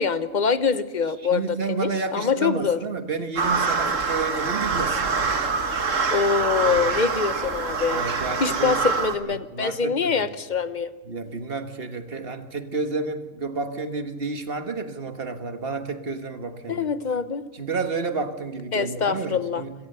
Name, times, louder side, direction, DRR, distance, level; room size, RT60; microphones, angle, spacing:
voice 1, 0.0-2.8 6.1-8.0 8.4-10.9 16.7-17.5 18.7-19.6, left 5 dB, 40° left, 13 dB, 0.9 m, -24 dB
voice 2, 1.2-5.5 6.4-6.9 7.9-8.8 9.3-10.4 11.0-16.9 17.5-19.7, right 4 dB, 50° right, 8 dB, 1.7 m, -31 dB
sound 1, 3.4-9.1, right 4 dB, 70° right, 1.9 m, -25 dB
26.5 x 17.5 x 6.8 m, 1.2 s
omnidirectional pair, 1.3 m